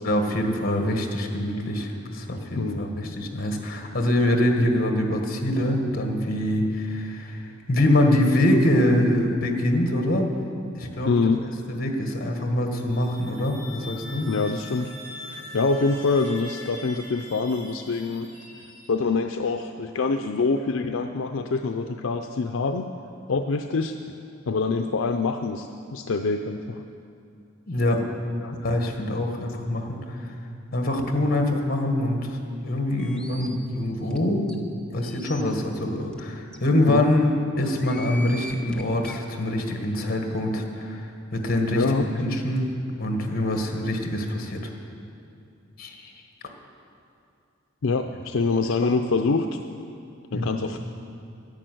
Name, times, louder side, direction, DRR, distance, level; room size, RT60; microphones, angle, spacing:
voice 1, 0.0-10.3 10.7-11.1 11.7-14.3 27.7-28.1 28.6-30.3 30.7-34.5 34.9-42.7 43.0-44.7 45.8-46.1 48.8-49.0 50.3-50.6, left 1 dB, 50° left, 3 dB, 1.6 m, -24 dB
voice 2, 2.5-2.9 11.0-11.4 14.3-14.9 15.2-18.3 18.9-22.9 23.3-24.0 24.5-26.8 28.4-28.5 36.9-37.1 41.7-42.1 47.8-49.6 50.3-50.8, left 4 dB, 75° left, 6 dB, 0.5 m, -25 dB
sound 1, 12.8-19.3, left 2 dB, 20° left, 3.0 m, -43 dB
sound 2, 33.0-33.5 34.1-34.2 34.5-34.6 35.0-35.4 36.1-36.2 36.5-36.6 37.6-39.2, left 1 dB, 5° left, 0.9 m, -40 dB
10.5 x 10.5 x 7.8 m, 2.5 s
head